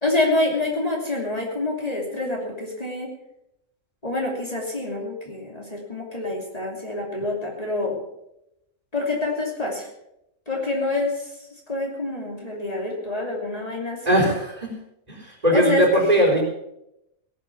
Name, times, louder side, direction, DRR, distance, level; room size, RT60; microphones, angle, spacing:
voice 1, 0.0-3.1 4.0-8.0 8.9-9.9 10.5-11.3 11.7-14.2 15.5-15.9, left 2 dB, 30° left, -1 dB, 2.9 m, -26 dB
voice 2, 14.1-14.7 15.1-16.4, right 1 dB, 30° right, -1 dB, 4.0 m, -20 dB
17.5 x 8.3 x 7.0 m, 0.83 s
omnidirectional pair, 1.4 m